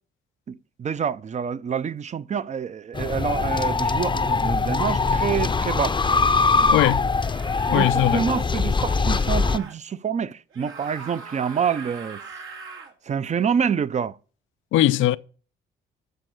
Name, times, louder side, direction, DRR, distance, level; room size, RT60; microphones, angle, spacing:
voice 1, 0.5-6.0 6.6-6.8 7.7-12.2 13.1-14.2, right 7 dB, 35° right, 0.6 m, -27 dB
sound 1, 2.9-9.6, left 4 dB, 25° left, 0.6 m, -22 dB
sound 2, 5.2-5.7 7.2-7.8 9.0-9.7 10.5-12.9, right 5 dB, 85° right, 2.8 m, -41 dB
voice 2, 6.7-7.1 7.7-8.2 14.7-15.2, left 14 dB, 85° left, 0.5 m, -20 dB
13.5 x 4.5 x 6.6 m
cardioid pair, 90°, 20 cm